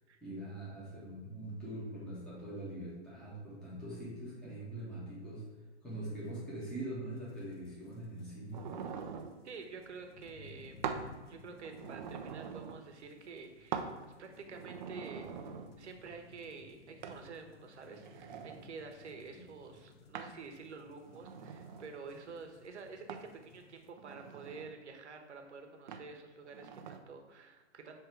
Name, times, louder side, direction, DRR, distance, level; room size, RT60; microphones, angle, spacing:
voice 1, 0.2-5.4 5.8-8.6 19.3-19.4, right 1 dB, ahead, -9 dB, 1.6 m, -43 dB
sound 1, 7.1-23.9, left 4 dB, 60° left, 0.8 m, -59 dB
sound 2, 8.5-9.4 10.8-11.1 11.5-12.8 13.7-14.0 14.5-15.7 17.0-17.2 17.8-18.7 20.1-20.4 21.0-22.0 23.1-23.3 24.0-24.7 25.9-26.1 26.5-27.0, right 7 dB, 40° right, 0.5 m, -43 dB
voice 2, 9.4-10.8 11.3-28.0, right 4 dB, 70° right, 4 dB, 1.1 m, -49 dB
7.0 x 3.3 x 4.6 m, 1.2 s
hypercardioid pair, 130°, 35 cm